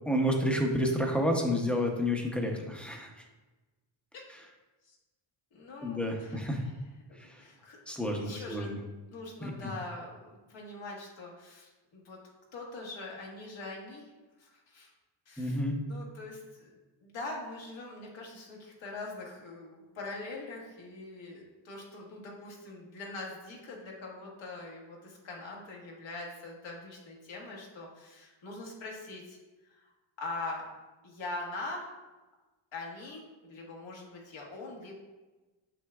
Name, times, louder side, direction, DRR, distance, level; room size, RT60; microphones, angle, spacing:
voice 1, 0.0-3.2 5.8-6.6 7.2-7.4 7.9-8.8 9.4-9.5 15.4-15.8, equal, ahead, 1 dB, 0.7 m, -30 dB
voice 2, 5.5-6.5 7.1-8.7 9.1-12.2 12.5-14.1 14.4-14.9 15.2-29.4 29.6-29.9 30.2-30.7 31.0-31.9 32.7-34.9, left 2 dB, 75° left, -3 dB, 1.6 m, -43 dB
6.8 x 5.9 x 2.3 m, 1.2 s
wide cardioid pair, 135°, 47 cm